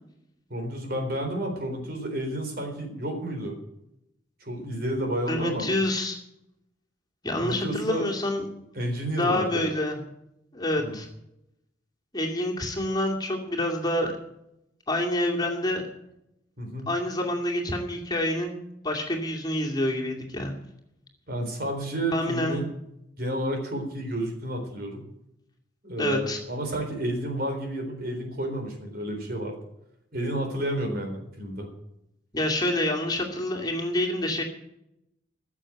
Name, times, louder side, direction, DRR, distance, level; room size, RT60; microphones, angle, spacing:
voice 1, 0.5-3.6 4.4-5.7 7.4-8.1 8.7-9.7 10.8-11.0 16.6-16.9 21.3-22.7 23.2-25.1 25.8-29.6 30.1-31.7, right 1 dB, 55° right, 4 dB, 3.9 m, -31 dB
voice 2, 5.3-6.2 7.2-8.5 9.1-10.0 10.5-11.1 12.1-14.1 14.9-15.8 16.9-18.6 18.8-20.5 22.1-22.6 26.0-26.4 32.3-34.4, left 1 dB, 20° left, -1 dB, 2.5 m, -27 dB
15.5 x 7.4 x 9.0 m, 0.83 s
head